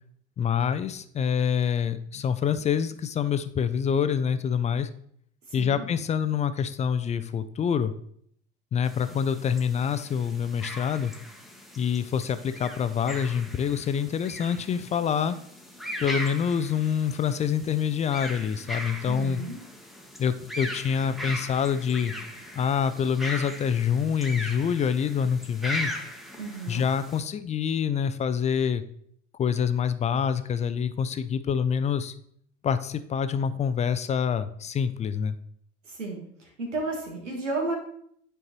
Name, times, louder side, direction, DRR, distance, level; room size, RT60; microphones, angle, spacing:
voice 1, 0.4-4.9 5.5-7.9 8.7-11.1 11.8-15.4 16.0-19.4 20.2-22.1 22.6-25.9 26.7-28.8 29.4-32.1 32.6-35.3, left 7 dB, 20° left, 11 dB, 0.3 m, -26 dB
sound 1, 8.8-27.2, left 1 dB, ahead, 1.0 m, -39 dB
voice 2, 19.1-19.6 26.4-26.8 35.8-37.7, right 3 dB, 85° right, 1 dB, 1.5 m, -33 dB
9.7 x 4.5 x 3.0 m, 0.67 s
figure-of-eight pair, 65°, 36 cm